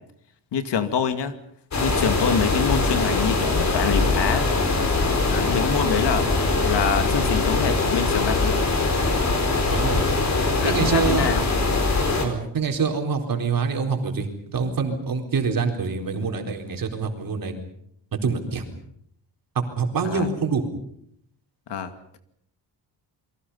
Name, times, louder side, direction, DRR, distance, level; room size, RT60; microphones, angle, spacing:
voice 1, 0.5-1.4 1.8-4.5 5.2-6.3 6.6-8.7 10.6-11.5 20.0-20.3 21.7-22.2, left 7 dB, 70° left, 9 dB, 2.3 m, -26 dB
sound 1, 1.7-12.2, left 3 dB, 40° left, 4.6 m, -22 dB
voice 2, 9.7-10.1 10.6-11.4 12.2-17.5 18.1-18.7 19.5-20.7, right 5 dB, 50° right, 3 dB, 4.1 m, -25 dB
29.0 x 23.0 x 5.6 m, 0.69 s
wide cardioid pair, 165°, 44 cm